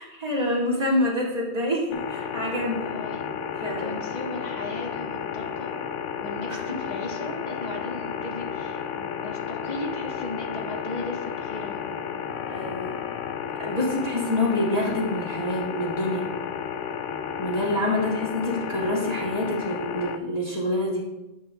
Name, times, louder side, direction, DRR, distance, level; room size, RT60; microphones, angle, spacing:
voice 1, 0.0-2.9 3.6-4.0 6.5-6.8 12.5-12.9 13.6-16.3 17.4-21.0, left 1 dB, 30° right, -4 dB, 2.4 m, -27 dB
sound 1, 1.9-20.2, left 8 dB, 75° left, 0.9 m, -32 dB
voice 2, 2.8-3.2 3.6-5.7 6.2-12.2, left 1 dB, 35° left, 0 dB, 1.2 m, -37 dB
11.0 x 7.2 x 2.3 m, 1.0 s
omnidirectional pair, 1.3 m